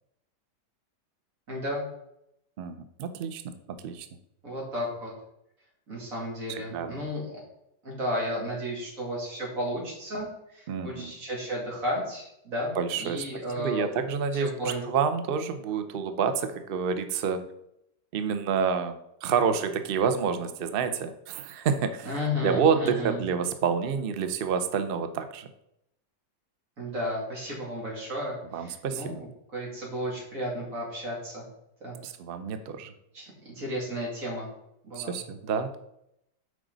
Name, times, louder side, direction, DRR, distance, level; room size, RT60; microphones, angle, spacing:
voice 1, 1.5-1.8 4.4-5.1 5.9-7.4 7.8-14.0 14.3-14.8 22.0-23.3 26.8-31.4 31.8-31.9 33.1-34.5 34.8-35.2, equal, 50° right, -4 dB, 2.9 m, -33 dB
voice 2, 2.6-3.4 3.8-4.1 6.5-7.0 10.7-11.1 12.8-17.4 18.1-22.1 22.4-25.5 28.5-29.2 32.0-32.9 35.0-35.8, right 6 dB, 90° right, 9 dB, 0.5 m, -28 dB
8.2 x 5.1 x 4.0 m, 0.79 s
omnidirectional pair, 1.9 m